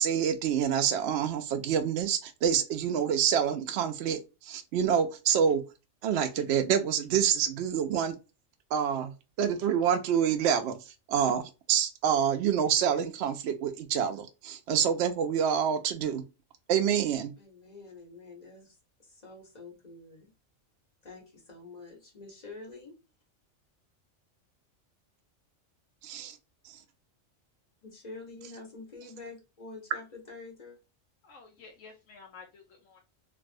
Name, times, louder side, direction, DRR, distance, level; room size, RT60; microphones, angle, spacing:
voice 1, 0.0-5.6 6.0-8.2 8.7-9.1 9.4-10.8 11.1-16.2 16.7-17.3 26.0-26.4, right 8 dB, 65° right, 0.8 m, -27 dB
voice 2, 17.4-20.3 21.0-22.9 27.8-30.8, left 3 dB, 35° left, 1.4 m, -47 dB
voice 3, 31.2-33.0, left 5 dB, 85° left, 1.1 m, -51 dB
3.1 x 2.6 x 2.5 m
omnidirectional pair, 1.3 m